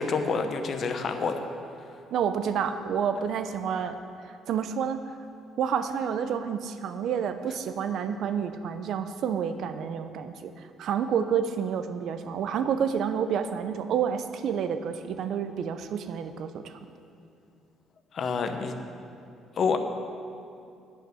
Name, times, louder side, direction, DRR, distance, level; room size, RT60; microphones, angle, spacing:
voice 1, 0.0-1.4 18.1-18.8 19.6-19.8, left 5 dB, 40° left, 7 dB, 0.8 m, -27 dB
voice 2, 2.1-4.0 4.2-5.2 5.6-16.7, right 7 dB, 60° right, 10 dB, 0.6 m, -29 dB
10.0 x 5.8 x 7.6 m, 2.5 s
cardioid pair, 135°, 0 cm